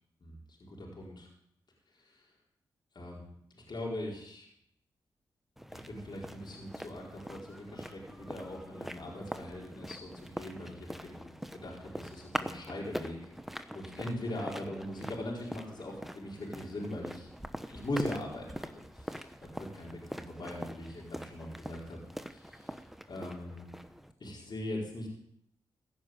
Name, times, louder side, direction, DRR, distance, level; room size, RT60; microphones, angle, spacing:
voice 1, 0.2-1.3 1.9-2.3 2.9-3.2 3.5-4.5 5.7-13.3 13.7-17.3 17.7-22.0 22.3-22.8 23.1-23.6 24.2-25.1, left 1 dB, 55° left, -3 dB, 4.7 m, -41 dB
sound 1, 5.6-24.1, equal, 5° right, 1.2 m, -43 dB
16.0 x 6.2 x 9.0 m, 0.76 s
supercardioid pair, 40°, 9 cm